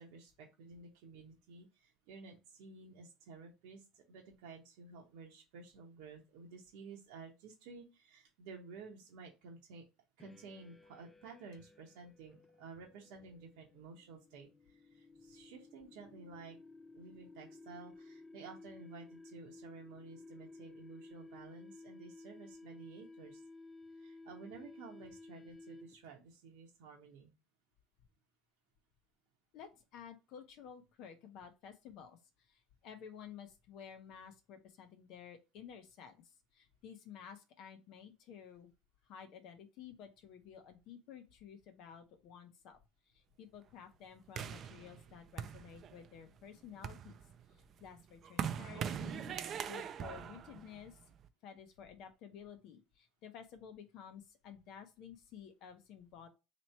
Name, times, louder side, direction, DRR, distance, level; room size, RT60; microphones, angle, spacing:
voice 1, 0.0-9.8 10.2-16.6 16.9-23.4 23.9-27.3, right 4 dB, 75° right, 0 dB, 0.9 m, -53 dB
sound 1, 10.2-26.1, left 3 dB, 15° left, 0.4 m, -56 dB
voice 2, 29.5-38.7 39.0-42.8 43.1-47.2 47.5-49.3 49.7-51.0 51.4-56.3, left 8 dB, 65° left, 6 dB, 0.7 m, -53 dB
sound 2, 44.4-46.2 46.6-51.3, right 8 dB, 45° right, 0.4 m, -42 dB
3.0 x 2.9 x 4.3 m, 0.28 s
supercardioid pair, 85°, 0 cm